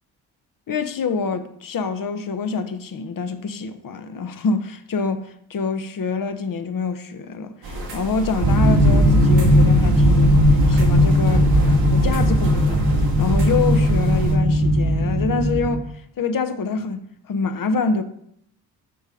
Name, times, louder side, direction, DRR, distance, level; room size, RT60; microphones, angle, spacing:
voice 1, 0.7-10.4 10.7-11.5 11.9-15.9 16.2-18.0, left 4 dB, 50° left, 0.9 m, -26 dB
sound 1, 7.6-14.3, right 1 dB, 85° right, 1.7 m, -28 dB
sound 2, 8.4-15.8, equal, 50° right, 1.4 m, -17 dB
6.6 x 5.4 x 3.8 m
supercardioid pair, 45°, 44 cm